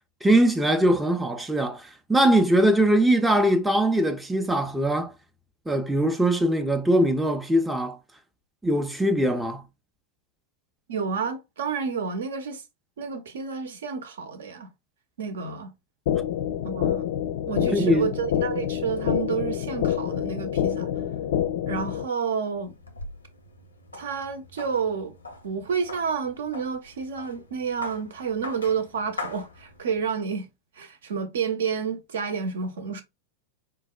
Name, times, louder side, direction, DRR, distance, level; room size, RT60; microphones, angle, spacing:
voice 1, 0.2-5.1 5.7-8.0 8.6-9.6 17.7-18.1, right 1 dB, 5° right, 0.4 m, -21 dB
voice 2, 10.9-12.6 13.0-14.7 15.2-15.7 16.6-17.1 17.5-20.9 21.7-22.8 23.9-25.1 25.4-30.5 30.8-33.0, right 6 dB, 65° right, 0.6 m, -30 dB
sound 1, 16.1-22.1, left 10 dB, 55° left, 0.3 m, -27 dB
sound 2, 22.5-30.1, left 2 dB, 80° left, 0.7 m, -42 dB
4.6 x 2.0 x 2.3 m
figure-of-eight pair, 90°, 0 cm